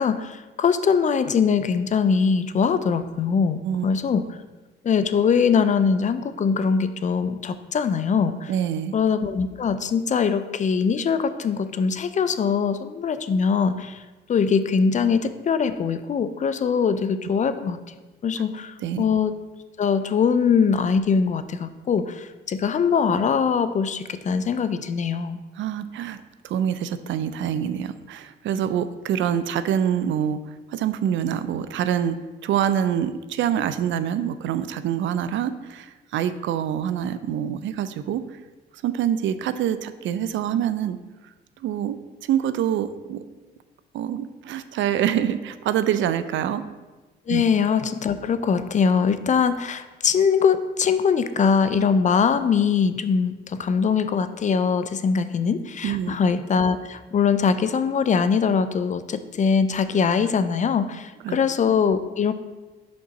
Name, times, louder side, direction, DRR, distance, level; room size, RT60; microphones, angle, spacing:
voice 1, 0.0-4.3 4.8-8.5 8.9-14.0 14.3-17.8 18.2-19.3 19.8-25.4 47.3-62.3, left 6 dB, 40° left, 12 dB, 0.4 m, -22 dB
voice 2, 8.5-8.9 18.8-19.0 25.6-30.4 30.7-32.2 32.4-38.2 38.8-41.0 41.6-42.0 42.3-43.2 43.9-46.6 47.3-47.4 55.8-56.2 61.2-61.4, right 9 dB, 70° right, 12 dB, 0.5 m, -25 dB
5.2 x 3.9 x 5.8 m, 1.2 s
cardioid pair, 90°, 20 cm